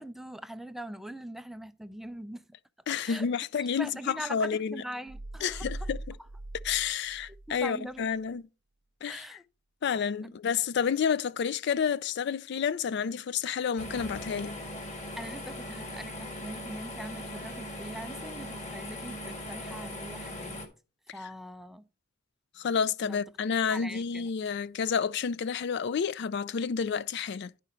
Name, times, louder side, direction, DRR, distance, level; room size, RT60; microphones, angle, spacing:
voice 1, 0.0-2.4 3.0-3.3 3.6-5.9 7.5-8.4 9.1-9.4 10.2-10.3 15.2-20.6 21.1-21.8 23.0-23.2 23.7-24.3, equal, ahead, 0.4 m, -42 dB
voice 2, 2.9-4.8 5.4-6.0 6.6-8.5 9.0-9.3 9.8-14.6 22.6-27.5, left 7 dB, 60° left, 0.4 m, -30 dB
sound 1, 5.1-7.6 8.0-8.1, right 2 dB, 75° right, 0.6 m, -41 dB
sound 2, 13.8-20.7, left 1 dB, 40° left, 1.7 m, -40 dB
10.5 x 5.0 x 4.3 m
head